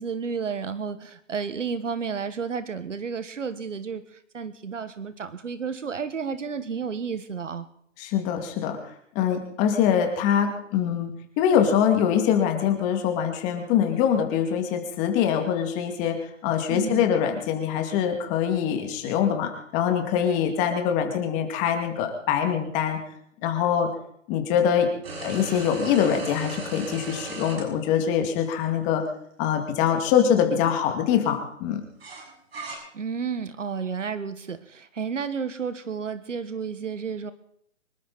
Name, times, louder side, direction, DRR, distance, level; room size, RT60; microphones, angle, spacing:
voice 1, 0.0-7.7 16.7-17.1 32.9-37.3, right 6 dB, 75° right, 12 dB, 1.5 m, -32 dB
voice 2, 8.0-8.8 9.1-16.2 16.4-23.0 23.4-23.9 24.3-24.9 25.2-29.0 29.4-31.8, left 8 dB, 20° left, 4 dB, 2.4 m, -24 dB
sound 1, 25.0-27.6 28.6-28.7 32.0-32.7, right 3 dB, 50° right, 6.6 m, -36 dB
25.0 x 12.5 x 4.2 m, 0.69 s
hypercardioid pair, 150°, 37 cm